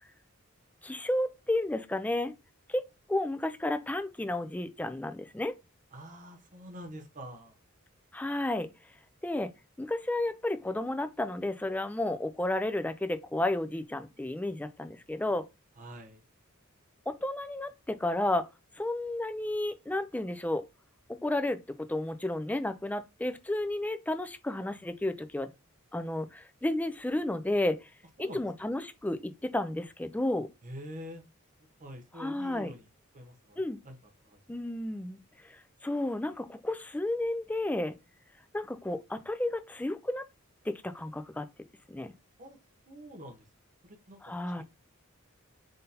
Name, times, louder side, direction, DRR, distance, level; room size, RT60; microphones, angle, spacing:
voice 1, 0.8-2.3 2.7-2.8 3.1-5.5 8.1-8.7 9.2-9.5 9.8-15.5 17.1-18.5 18.8-20.6 21.2-21.6 21.9-25.5 25.9-27.9 28.2-30.5 32.2-32.7 33.6-33.8 34.5-37.9 38.5-40.3 40.7-41.5 41.9-42.1 44.2-44.6, left 1 dB, 5° left, 0.3 m, -32 dB
voice 2, 5.9-7.6 15.8-16.2 28.2-28.5 30.6-31.2 31.8-32.9 33.1-34.0 34.2-34.4 42.4-42.6 42.9-43.5 43.8-44.6, equal, 40° right, 0.9 m, -46 dB
3.8 x 2.7 x 3.9 m
head